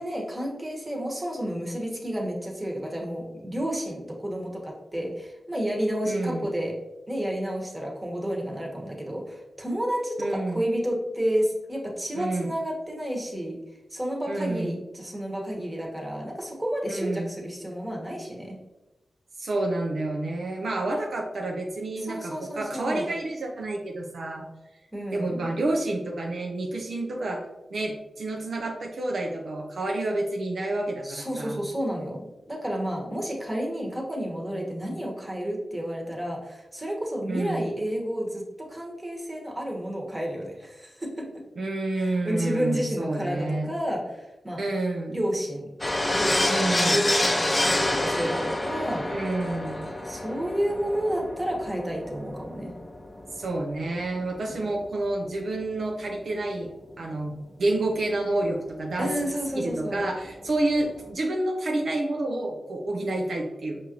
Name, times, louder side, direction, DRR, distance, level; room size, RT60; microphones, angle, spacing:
voice 1, 0.0-6.8 7.1-13.6 13.9-18.6 22.0-23.1 24.9-25.5 31.0-41.4 41.9-44.6 45.1-45.7 46.1-49.1 50.0-52.7 54.4-54.6 59.0-60.1, equal, 20° right, -1 dB, 1.2 m, -31 dB
voice 2, 6.0-6.5 10.2-10.6 12.1-12.5 14.3-14.8 16.9-17.3 19.4-24.5 25.1-27.4 27.7-31.6 37.3-37.7 41.6-43.7 44.6-45.2 46.5-47.0 49.1-49.8 53.3-56.7 57.0-63.8, right 2 dB, 75° right, 0 dB, 0.5 m, -29 dB
sound 1, 45.8-55.5 55.8-55.9 56.1-56.2 58.7-58.8 59.0-59.1 59.3-61.1, left 1 dB, 25° left, 0.5 m, -28 dB
5.3 x 2.5 x 2.9 m, 1.0 s
cardioid pair, 40°, 0 cm